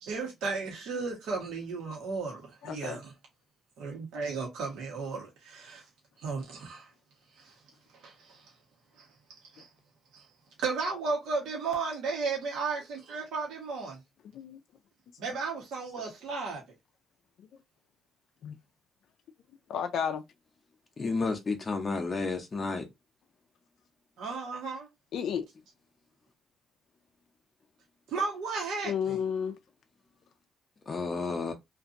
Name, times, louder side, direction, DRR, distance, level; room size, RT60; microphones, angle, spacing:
voice 1, 0.0-3.1 3.8-5.8 6.2-6.9 7.4-7.5 8.0-8.5 9.0-9.1 9.5-9.7 10.1-10.2 10.6-14.0 15.2-16.6 24.2-24.9 28.1-29.2, right 4 dB, 80° right, 1.1 m, -34 dB
voice 2, 2.6-3.0 14.3-14.6 18.4-18.6 19.7-20.2 25.1-25.5 28.8-29.6, left 7 dB, 70° left, 0.3 m, -32 dB
voice 3, 21.0-22.9 30.9-31.5, left 4 dB, 35° left, 0.6 m, -31 dB
2.8 x 2.5 x 2.5 m
cardioid pair, 90°, 0 cm